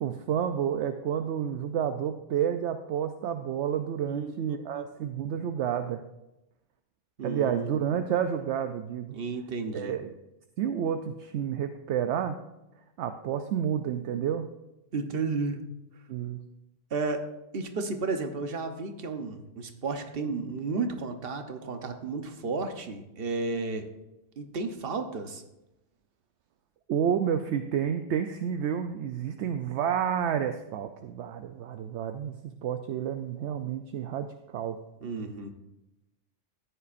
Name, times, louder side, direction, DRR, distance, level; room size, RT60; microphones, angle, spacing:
voice 1, 0.0-6.0 7.2-9.2 9.7-10.1 10.6-12.4 13.0-14.5 16.1-16.4 26.9-34.8, right 8 dB, 70° right, 8 dB, 0.9 m, -30 dB
voice 2, 7.2-7.7 9.1-10.0 14.9-15.6 16.9-17.2 17.5-23.9 24.4-25.4 35.0-35.5, right 3 dB, 50° right, 6 dB, 1.1 m, -32 dB
14.0 x 10.0 x 2.6 m, 0.93 s
omnidirectional pair, 1.3 m